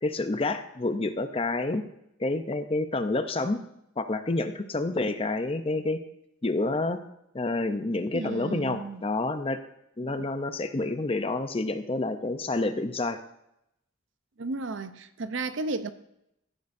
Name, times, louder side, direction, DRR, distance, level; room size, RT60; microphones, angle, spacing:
voice 1, 0.0-1.8 2.2-3.6 4.0-6.0 6.4-7.0 7.3-9.6 10.0-13.2, left 2 dB, 25° left, 0.6 m, -28 dB
voice 2, 8.1-9.1 10.0-10.2 14.4-15.9, right 3 dB, 60° right, 0.6 m, -33 dB
15.0 x 10.5 x 2.6 m
head